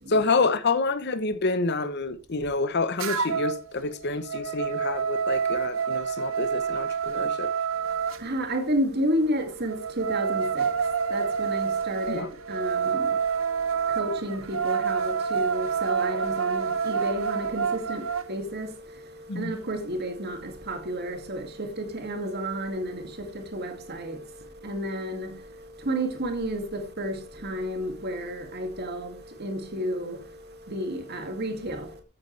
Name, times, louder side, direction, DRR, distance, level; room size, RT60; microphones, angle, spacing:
voice 1, 0.1-7.5 12.1-12.3 19.3-19.6, left 3 dB, 50° left, 0.9 m, -28 dB
sound 1, 3.0-3.6 4.0-8.2 9.7-18.3, right 6 dB, 65° right, 1.1 m, -28 dB
voice 2, 7.7-32.0, right 1 dB, 50° right, 2.3 m, -32 dB
14.0 x 8.5 x 3.3 m
head